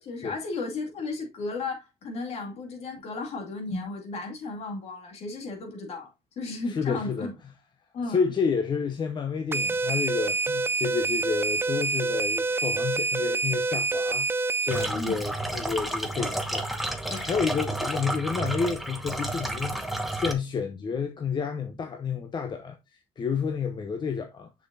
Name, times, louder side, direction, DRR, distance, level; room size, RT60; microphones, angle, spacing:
voice 1, 0.0-7.3 7.9-8.2 14.9-15.2, left 3 dB, 65° left, 2.3 m, -34 dB
voice 2, 6.7-7.3 8.1-24.5, left 6 dB, 40° left, 0.7 m, -30 dB
sound 1, 9.5-14.9, right 3 dB, 20° right, 0.4 m, -27 dB
sound 2, 14.7-20.3, right 1 dB, ahead, 1.2 m, -31 dB
6.5 x 6.3 x 2.7 m
cardioid pair, 80°, 11 cm